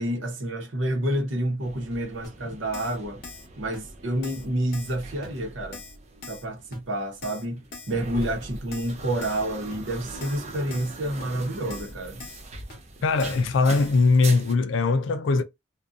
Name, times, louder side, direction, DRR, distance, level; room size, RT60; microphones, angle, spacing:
voice 1, 0.0-3.2 3.6-5.8 6.3-12.2, right 1 dB, 75° right, 0.8 m, -29 dB
sound 1, 1.6-14.5, right 2 dB, 35° right, 0.5 m, -42 dB
Keyboard (musical), 2.2-2.3 2.7-3.0 3.2-3.5 3.7-3.8 4.2-4.5 4.7-5.0 5.2-5.3 5.7-6.0 6.2-6.4 6.7-6.8 7.2-7.4 7.7-7.9 8.2-8.3 8.7-8.9 9.2-9.4 9.7-9.8 10.2-10.4 10.7-10.9 11.2-11.3 11.7-11.9 12.2-12.4 12.7-12.8 13.2-13.4 13.7-13.9, left 4 dB, 50° left, 0.8 m, -42 dB
voice 2, 13.0-15.4, left 3 dB, 75° left, 0.4 m, -21 dB
2.6 x 2.2 x 2.4 m
head